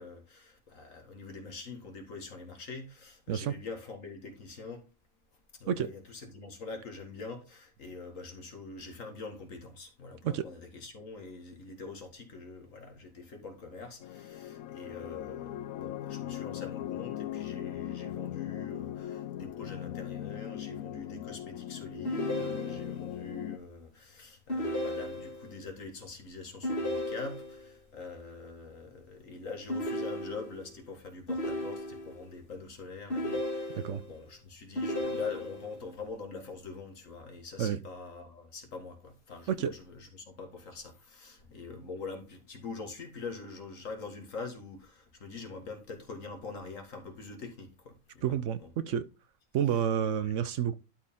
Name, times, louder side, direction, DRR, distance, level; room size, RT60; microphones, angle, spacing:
voice 1, 0.0-4.9 5.5-48.7 50.2-50.3, left 4 dB, 70° left, 2.2 m, -44 dB
sound 1, 14.0-23.6, left 12 dB, 85° left, 1.0 m, -39 dB
sound 2, 22.0-23.1 24.5-25.6 26.6-27.7 29.7-30.7 31.3-32.3 33.1-34.1 34.8-35.8, left 1 dB, 40° left, 2.4 m, -34 dB
voice 2, 48.2-49.1 49.5-50.7, right 9 dB, 70° right, 0.9 m, -29 dB
11.5 x 4.5 x 3.6 m
omnidirectional pair, 1.4 m